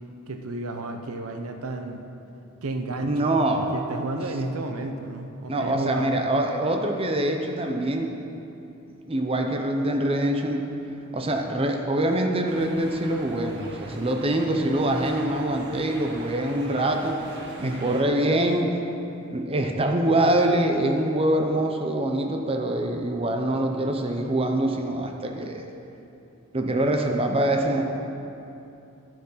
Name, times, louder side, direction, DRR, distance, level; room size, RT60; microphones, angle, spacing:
voice 1, 0.3-2.0 2.6-3.3 3.6-6.2 17.6-17.9, right 2 dB, 80° right, 5 dB, 0.8 m, -32 dB
voice 2, 3.1-3.7 5.5-8.1 9.1-10.6 11.1-17.2 17.6-18.7 19.3-25.6 26.5-27.8, right 1 dB, 25° right, 3 dB, 0.7 m, -24 dB
sound 1, 12.5-18.0, right 1 dB, 55° right, 1.2 m, -41 dB
12.0 x 7.6 x 5.7 m, 2.8 s
head